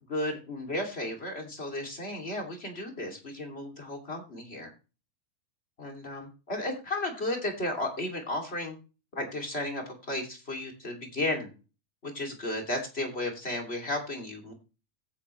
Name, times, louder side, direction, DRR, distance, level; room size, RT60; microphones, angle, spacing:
voice 1, 0.1-4.7 5.8-8.8 9.1-11.5 12.0-14.5, left 1 dB, 20° left, 2 dB, 2.4 m, -34 dB
16.0 x 8.3 x 3.2 m, 0.32 s
omnidirectional pair, 4.2 m